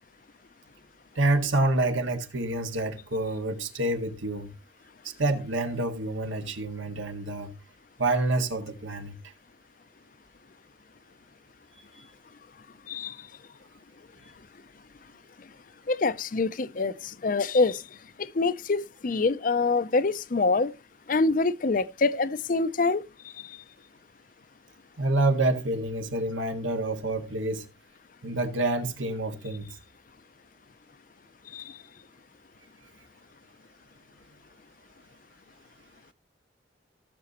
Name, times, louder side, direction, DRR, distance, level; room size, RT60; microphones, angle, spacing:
voice 1, 1.2-4.5 5.0-7.5 8.0-9.1 25.0-27.7 28.2-29.7, right 2 dB, 85° right, 1.8 m, -27 dB
voice 2, 12.9-13.3 15.9-17.8 18.2-20.7 21.1-23.6 31.5-31.8, left 3 dB, 45° left, 0.5 m, -26 dB
17.5 x 6.9 x 2.9 m
head